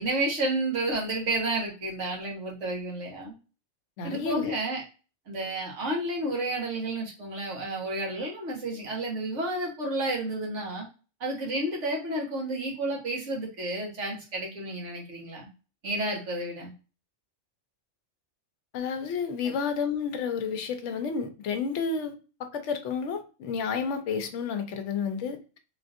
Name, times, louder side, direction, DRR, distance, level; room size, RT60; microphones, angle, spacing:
voice 1, 0.0-3.3 4.0-4.8 5.3-10.8 11.2-15.5 15.8-16.7 19.4-19.5, right 2 dB, 75° right, 1.5 m, -31 dB
voice 2, 4.0-4.5 18.7-25.6, left 5 dB, 80° left, 1.0 m, -31 dB
3.7 x 2.6 x 2.4 m
omnidirectional pair, 1.3 m